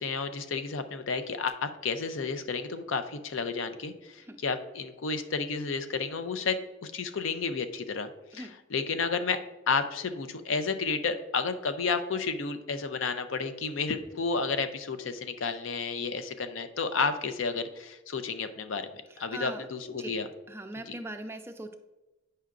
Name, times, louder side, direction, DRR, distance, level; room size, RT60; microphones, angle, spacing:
voice 1, 0.0-9.4 9.7-18.9 19.2-20.3 20.9-21.0, left 4 dB, 85° left, 9 dB, 0.5 m, -31 dB
voice 2, 19.3-19.7 20.0-20.1 20.5-21.7, right 1 dB, 15° right, 7 dB, 0.4 m, -39 dB
9.2 x 5.6 x 2.5 m, 1.1 s
head